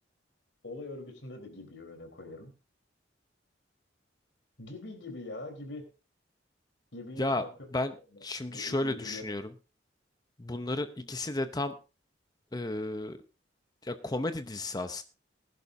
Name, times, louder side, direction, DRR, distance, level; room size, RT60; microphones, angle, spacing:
voice 1, 0.6-2.5 4.6-5.8 6.9-7.5 8.4-9.4, left 2 dB, 75° left, 5 dB, 3.9 m, -43 dB
voice 2, 8.2-9.5 10.4-11.8 12.5-13.2 13.8-15.0, left 2 dB, 20° left, 10 dB, 0.7 m, -33 dB
20.0 x 11.0 x 2.7 m, 0.31 s
head